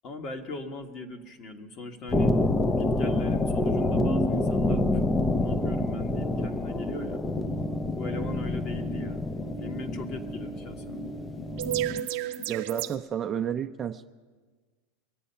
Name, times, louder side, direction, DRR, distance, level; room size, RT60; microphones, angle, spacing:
voice 1, 0.0-2.3 2.6-5.0 5.4-7.2 7.9-9.3 9.6-11.0, left 3 dB, 45° left, 5 dB, 1.6 m, -40 dB
sound 1, 2.1-12.0, left 2 dB, 20° left, 0.5 m, -27 dB
sound 2, 3.9-13.0, right 10 dB, 65° right, 0.9 m, -37 dB
sound 3, 4.8-12.5, left 8 dB, 70° left, 1.7 m, -44 dB
voice 2, 12.5-14.1, right 9 dB, 30° right, 6 dB, 0.6 m, -31 dB
23.0 x 8.5 x 5.6 m, 1.4 s
hypercardioid pair, 110°, 0 cm